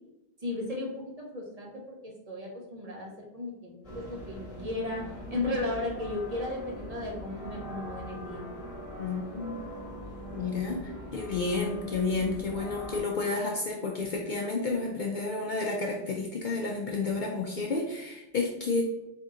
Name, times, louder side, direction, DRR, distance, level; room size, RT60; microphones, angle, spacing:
voice 1, 0.4-5.0 5.3-8.5, left 2 dB, 40° right, -1 dB, 0.8 m, -35 dB
sound 1, 3.8-13.0, equal, 35° left, 0.9 m, -42 dB
voice 2, 9.0-9.6 10.3-18.8, left 3 dB, 60° left, 0 dB, 0.5 m, -31 dB
3.7 x 2.7 x 3.7 m, 0.90 s
omnidirectional pair, 1.1 m